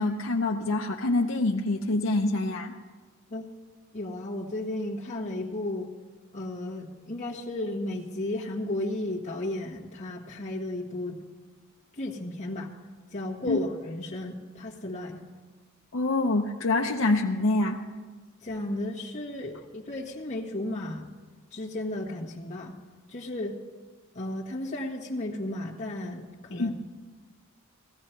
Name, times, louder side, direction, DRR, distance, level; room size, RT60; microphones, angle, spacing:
voice 1, 0.0-2.7 13.5-13.6 15.9-17.8 26.5-26.8, left 2 dB, 65° left, 1 dB, 0.7 m, -26 dB
voice 2, 3.9-5.9 6.3-11.2 12.0-12.7 13.1-15.2 18.4-21.1 21.5-22.8 23.1-23.6 24.1-26.8, left 1 dB, 35° left, -5 dB, 1.4 m, -34 dB
17.0 x 15.0 x 4.5 m, 1.4 s
head